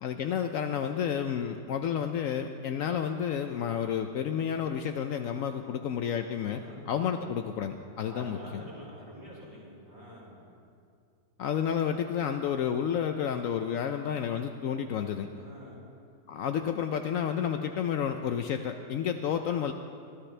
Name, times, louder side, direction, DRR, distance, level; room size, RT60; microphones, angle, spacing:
voice 1, 0.0-6.6 6.9-8.6 11.4-15.3 16.3-19.7, left 8 dB, 80° left, 6 dB, 0.7 m, -30 dB
voice 2, 7.9-10.4 15.3-15.8, equal, 10° right, -6 dB, 4.4 m, -47 dB
23.5 x 13.0 x 3.3 m, 2.3 s
omnidirectional pair, 2.0 m